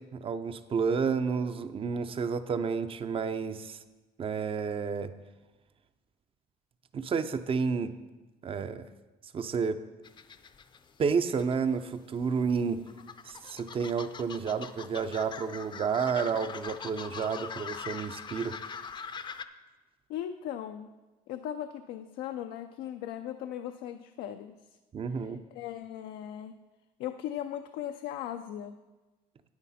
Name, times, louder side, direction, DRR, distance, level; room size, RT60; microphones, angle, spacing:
voice 1, 0.0-3.8 4.2-5.1 6.9-7.9 8.4-8.8 9.3-9.8 11.0-12.8 13.2-18.6 24.9-25.4, right 5 dB, 35° right, 11 dB, 0.6 m, -30 dB
sound 1, 10.0-11.7 11.9-19.4, left 6 dB, 30° left, 0.5 m, -42 dB
voice 2, 20.1-20.9 21.3-24.6 25.2-26.5 27.0-28.8, left 11 dB, 80° left, 7 dB, 0.5 m, -38 dB
9.6 x 9.1 x 4.2 m, 1.1 s
cardioid pair, 100°, 16 cm